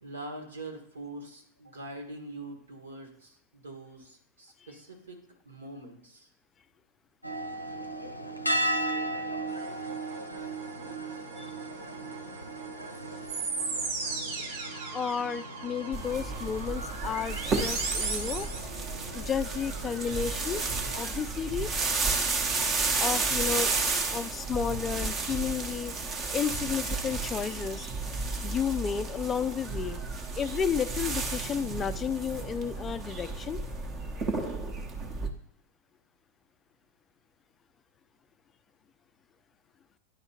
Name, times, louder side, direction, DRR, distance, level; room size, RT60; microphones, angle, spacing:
voice 1, 0.0-6.3, right 2 dB, 75° right, 3 dB, 1.6 m, -44 dB
sound 1, 7.2-21.1, right 1 dB, 90° left, 0.6 m, -37 dB
sound 2, 9.5-18.6, right 4 dB, 50° right, 1.3 m, -37 dB
voice 2, 14.9-18.5 19.1-20.7 20.9-21.7 23.0-23.8 24.1-27.9 28.4-30.0 30.4-33.6, left 7 dB, 20° left, 13 dB, 0.3 m, -32 dB
sound 3, 15.9-35.3, right 4 dB, 30° right, 0.9 m, -32 dB
9.9 x 3.3 x 4.3 m, 0.69 s
figure-of-eight pair, 90°, 0 cm